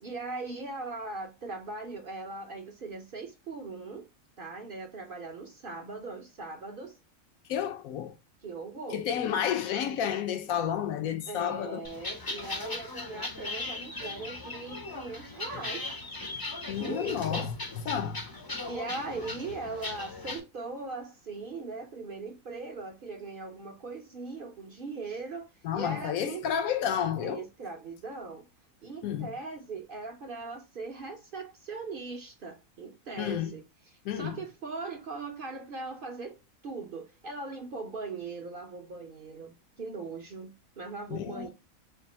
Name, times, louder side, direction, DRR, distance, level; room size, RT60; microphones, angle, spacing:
voice 1, 0.0-4.1 4.4-7.0 8.4-9.1 11.3-15.9 16.8-17.5 18.7-26.4 27.2-28.5 28.8-33.6 34.1-41.5, right 3 dB, 50° right, 0.7 m, -40 dB
voice 2, 7.5-8.1 8.9-11.8 16.7-17.5 17.9-18.3 25.6-27.4 29.0-29.3 33.2-33.5 34.0-34.4 41.1-41.5, left 9 dB, 80° left, 1.1 m, -31 dB
sound 1, 11.8-20.4, left 2 dB, 35° left, 0.3 m, -38 dB
3.5 x 2.5 x 4.0 m
omnidirectional pair, 1.5 m